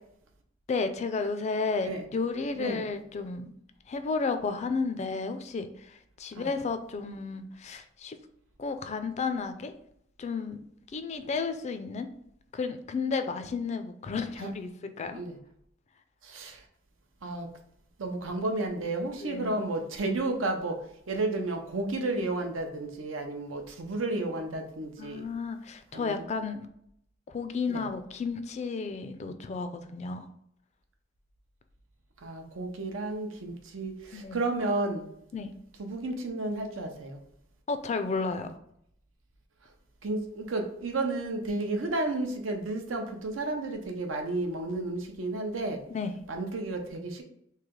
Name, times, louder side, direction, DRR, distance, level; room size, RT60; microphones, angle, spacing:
voice 1, 0.7-3.5 3.9-8.2 8.6-9.7 10.2-10.6 10.9-12.1 12.5-14.7 15.0-15.2 19.2-19.5 25.0-26.7 27.3-30.2 34.1-34.4 35.3-35.5 37.7-38.5 45.9-46.1, left 4 dB, 35° left, 9 dB, 0.3 m, -32 dB
voice 2, 2.5-2.9 6.4-6.5 14.4-14.5 15.1-15.4 16.3-16.6 17.2-17.5 18.0-20.8 21.1-25.2 25.9-26.2 27.7-27.8 32.2-35.0 35.8-37.2 40.0-45.8 46.3-47.2, right 2 dB, 85° right, 4 dB, 0.7 m, -32 dB
3.2 x 2.8 x 3.7 m, 0.71 s
head